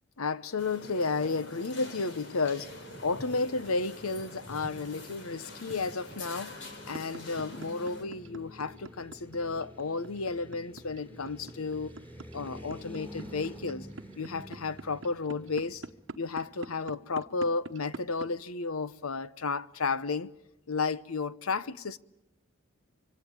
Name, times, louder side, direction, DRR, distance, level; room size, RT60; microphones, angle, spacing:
voice 1, 0.2-6.6 6.9-12.0 12.3-15.8 16.1-20.3 20.7-22.0, left 4 dB, 90° left, 0.9 m, -32 dB
sound 1, 0.6-8.0, left 2 dB, 55° left, 3.9 m, -45 dB
sound 2, 2.6-16.8, equal, 10° left, 4.0 m, -50 dB
sound 3, 5.7-18.3, right 3 dB, 65° right, 1.0 m, -43 dB
25.5 x 25.0 x 8.8 m
head